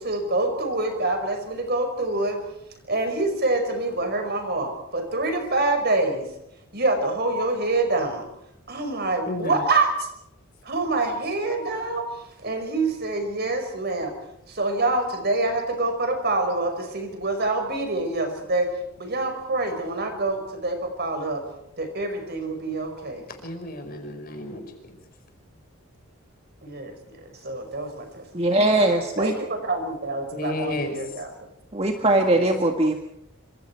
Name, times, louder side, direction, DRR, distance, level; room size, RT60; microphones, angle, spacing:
voice 1, 0.0-2.4 2.9-6.3 6.7-8.3 8.7-10.1 10.6-12.1 12.4-14.1 14.5-18.7 19.0-21.4 21.8-23.2 26.6-28.2 29.2-31.3 32.4-32.5, right 2 dB, 45° right, 6 dB, 5.3 m, -26 dB
voice 2, 9.3-9.6 23.2-25.0 30.3-31.0, left 1 dB, 40° left, 5 dB, 5.0 m, -32 dB
voice 3, 28.3-29.3 31.7-32.9, right 1 dB, 30° right, 3 dB, 1.8 m, -20 dB
27.0 x 26.5 x 4.7 m, 0.79 s
head